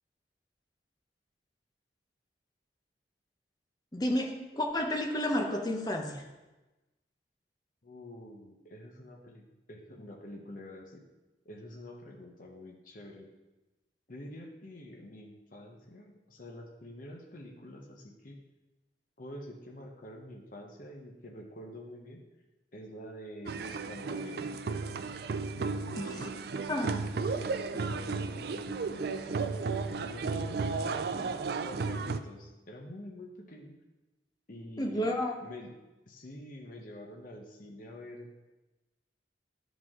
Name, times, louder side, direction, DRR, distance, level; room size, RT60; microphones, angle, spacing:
voice 1, 3.9-6.3 26.0-26.3 26.7-27.0 34.8-35.3, left 1 dB, 20° left, 3 dB, 0.8 m, -31 dB
voice 2, 7.8-11.0 11.4-13.3 14.1-18.4 19.2-22.2 22.7-24.5 25.6-26.4 26.9-29.4 30.0-33.7 34.5-35.0 35.4-35.7 36.1-38.5, left 1 dB, 45° left, 1 dB, 0.9 m, -47 dB
sound 1, 23.5-32.2, right 4 dB, 55° right, 0.4 m, -34 dB
11.0 x 5.2 x 3.7 m, 1.1 s
head